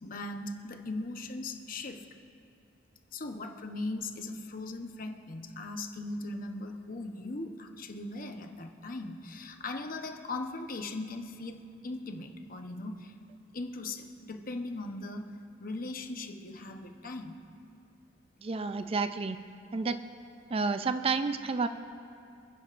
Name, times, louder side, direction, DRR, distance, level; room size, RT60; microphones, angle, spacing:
voice 1, 0.0-2.1 3.1-13.1 13.5-15.3 15.6-17.4, left 2 dB, 50° left, 4 dB, 0.9 m, -39 dB
voice 2, 18.4-19.4 19.7-20.0 20.5-21.7, right 4 dB, 30° right, 10 dB, 0.4 m, -30 dB
28.0 x 10.0 x 2.5 m, 2.5 s
head